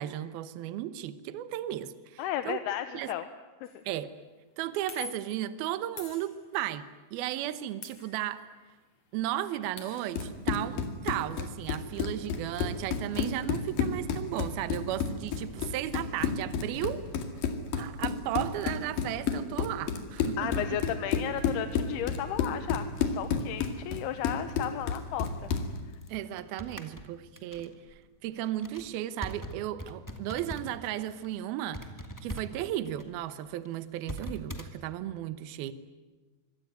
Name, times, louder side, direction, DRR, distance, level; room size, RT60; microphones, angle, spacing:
voice 1, 0.0-2.6 2.9-3.1 3.8-4.1 4.6-8.4 9.1-17.0 17.7-20.6 26.1-31.9 32.2-35.7, right 13 dB, 75° right, 13 dB, 2.8 m, -35 dB
voice 2, 2.2-3.3 3.6-3.8 20.4-25.5, left 11 dB, 85° left, 10 dB, 3.0 m, -34 dB
sound 1, 3.6-3.9 4.9-5.4 6.0-6.8 7.8-8.7 9.0-9.1 9.3-10.2, left 6 dB, 45° left, 3.9 m, -46 dB
Run, 9.9-25.8, left 6 dB, 65° left, 3.8 m, -31 dB
sound 2, 25.2-30.9 31.1-31.3 31.7-34.7, equal, 10° left, 0.9 m, -42 dB
25.5 x 23.5 x 9.3 m, 1.3 s
omnidirectional pair, 4.5 m